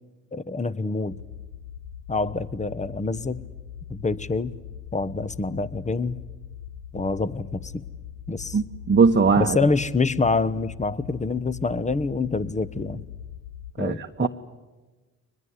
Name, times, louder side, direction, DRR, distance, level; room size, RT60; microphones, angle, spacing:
voice 1, 0.3-1.2 2.1-3.4 3.9-4.5 4.9-6.2 6.9-7.8 8.3-8.6 9.4-13.1 13.8-14.3, left 3 dB, 15° left, 18 dB, 1.0 m, -26 dB
sound 1, 1.0-13.7, left 9 dB, 80° left, 1.0 m, -41 dB
voice 2, 8.5-9.6 13.8-14.3, right 5 dB, 25° right, 5 dB, 1.1 m, -20 dB
23.0 x 20.5 x 9.7 m, 1.2 s
hypercardioid pair, 50°, 42 cm